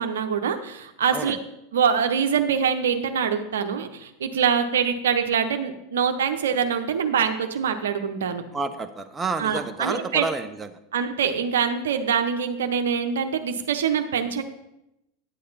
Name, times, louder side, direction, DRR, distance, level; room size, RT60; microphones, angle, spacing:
voice 1, 0.0-1.4 1.7-8.4 9.4-10.3 10.9-14.4, right 7 dB, 75° right, 7 dB, 0.9 m, -24 dB
voice 2, 8.5-10.7, right 3 dB, 20° right, 7 dB, 0.8 m, -29 dB
9.7 x 8.5 x 4.2 m, 0.86 s
hypercardioid pair, 85°, 0 cm